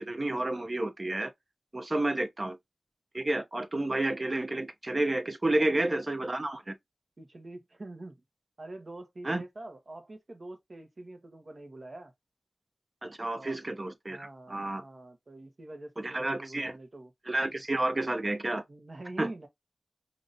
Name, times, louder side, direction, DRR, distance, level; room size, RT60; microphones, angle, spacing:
voice 1, 0.1-1.3 1.7-2.6 3.1-6.7 9.2-9.4 13.0-14.8 16.0-16.7 17.3-18.6 19.2-19.3, right 2 dB, 45° right, 0.9 m, -30 dB
voice 2, 7.2-8.2 8.6-12.1 13.4-13.6 14.1-17.1 18.7-19.5, right 2 dB, 60° right, 1.3 m, -45 dB
5.0 x 2.8 x 2.6 m
wide cardioid pair, 50°, 0 cm